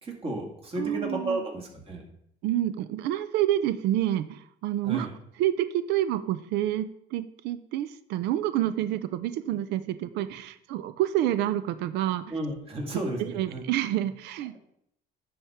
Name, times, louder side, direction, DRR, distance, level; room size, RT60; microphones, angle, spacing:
voice 1, 0.0-2.0 4.8-5.1 12.3-13.6, right 2 dB, 35° right, 1 dB, 1.9 m, -33 dB
voice 2, 0.8-1.4 2.4-5.1 5.4-12.3 13.2-14.6, right 12 dB, 85° right, 12 dB, 0.4 m, -28 dB
11.0 x 4.3 x 3.6 m, 0.73 s
cardioid pair, 110°, 17 cm